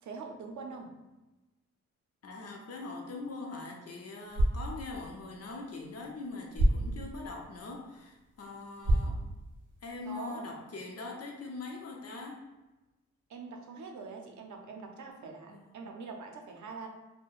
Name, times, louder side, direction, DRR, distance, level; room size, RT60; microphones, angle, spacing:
voice 1, 0.0-0.9 10.0-10.4 13.3-16.9, right 4 dB, 80° right, 3 dB, 0.5 m, -44 dB
voice 2, 2.2-9.2 9.8-12.4 15.5-15.8, left 3 dB, 55° left, 1 dB, 0.6 m, -42 dB
sound 1, 4.2-10.2, right 1 dB, 40° right, 0.6 m, -33 dB
4.5 x 2.1 x 2.4 m, 1.1 s
wide cardioid pair, 130°, 29 cm